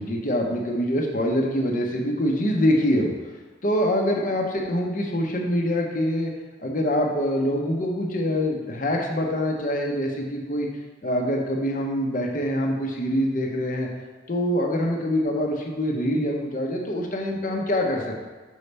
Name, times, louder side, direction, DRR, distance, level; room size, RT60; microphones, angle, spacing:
voice 1, 0.0-3.1 3.6-6.3 6.6-10.7 11.0-13.9 14.3-18.2, equal, 45° left, 0 dB, 0.8 m, -24 dB
5.5 x 3.3 x 5.3 m, 1.3 s
head